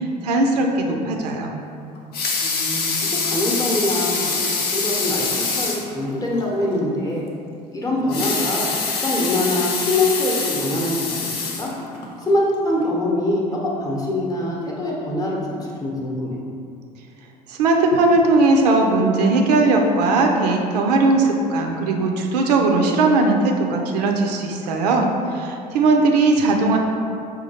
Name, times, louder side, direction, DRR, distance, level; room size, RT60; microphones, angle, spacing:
voice 1, 0.0-1.5 17.5-26.8, right 3 dB, 75° right, 2 dB, 0.4 m, -18 dB
Water tap faucet / Sink (filling or washing) / Liquid, 1.9-5.9 6.4-6.5 6.8-6.9 8.0-12.1 12.7-12.8, left 4 dB, 50° left, 0.6 m, -24 dB
voice 2, 2.4-7.3 7.7-11.7 12.2-16.3, left 1 dB, 15° left, -3 dB, 0.8 m, -24 dB
5.0 x 2.3 x 2.8 m, 2.5 s
figure-of-eight pair, 65°, 21 cm